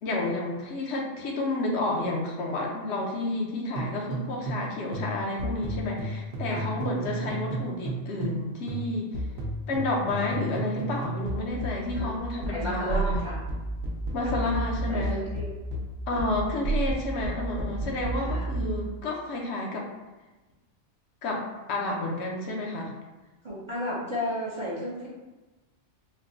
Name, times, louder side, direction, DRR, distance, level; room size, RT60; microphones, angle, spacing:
voice 1, 0.0-9.1 9.7-13.2 14.1-15.2 16.1-19.9 21.2-22.9, left 2 dB, 75° left, -1 dB, 0.9 m, -30 dB
sound 1, 3.7-4.7 4.9-8.4 8.7-18.8, right 2 dB, 70° right, 0.8 m, -32 dB
voice 2, 12.5-13.4 14.2-14.4 14.9-15.5 18.2-18.5 23.4-25.1, left 1 dB, 35° right, -7 dB, 0.5 m, -33 dB
4.3 x 2.0 x 2.5 m, 1.1 s
omnidirectional pair, 1.2 m